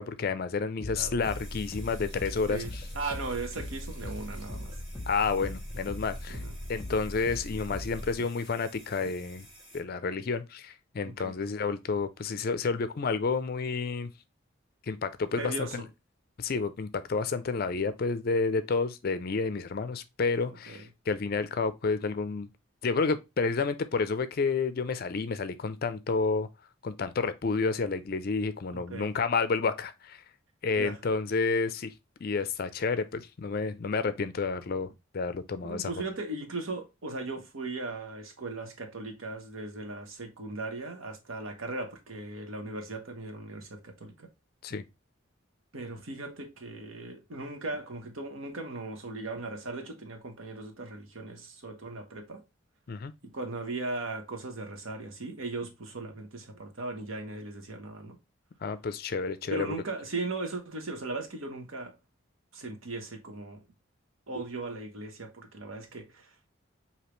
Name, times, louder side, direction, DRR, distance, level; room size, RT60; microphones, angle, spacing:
voice 1, 0.0-2.8 5.1-6.4 6.7-9.5 9.7-14.1 14.8-15.8 16.4-22.5 22.8-26.5 26.8-30.2 30.6-31.9 32.2-35.9 44.6-44.8 52.9-53.1 58.6-59.8, left 4 dB, 45° left, 0.4 m, -30 dB
sound 1, 0.8-8.2, left 1 dB, 10° left, 1.1 m, -39 dB
sound 2, 1.1-9.8, equal, 25° right, 1.6 m, -53 dB
voice 2, 2.5-4.8 6.3-6.5 8.2-8.4 11.0-11.3 15.4-15.8 20.7-20.8 28.7-29.1 30.8-31.0 35.6-44.3 45.7-52.4 53.2-58.2 59.5-61.9 62.5-63.6 64.3-66.3, right 2 dB, 75° right, 1.0 m, -38 dB
5.0 x 2.8 x 3.0 m
head